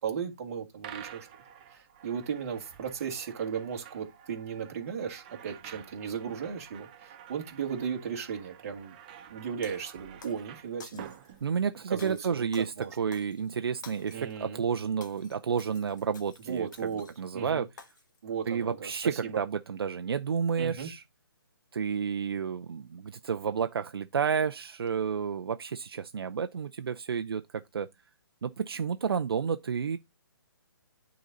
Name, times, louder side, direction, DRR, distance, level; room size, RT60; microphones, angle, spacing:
voice 1, 0.0-1.3 1.7-8.9 9.3-11.3 11.9-12.9 14.1-14.6 16.5-17.1 17.3-17.6 18.2-19.4 20.6-20.9, right 7 dB, 35° right, 1.7 m, -36 dB
sound 1, 0.8-12.0, right 9 dB, 20° right, 0.5 m, -50 dB
Shatter, 9.6-10.4 10.8-11.4 12.0-14.4 14.8-17.3 17.8-18.2, left 5 dB, 50° left, 1.3 m, -52 dB
voice 2, 11.4-17.7 18.5-21.0 21.7-27.9 28.4-30.0, right 6 dB, 75° right, 0.5 m, -31 dB
9.4 x 4.0 x 3.8 m
hypercardioid pair, 165°, 13 cm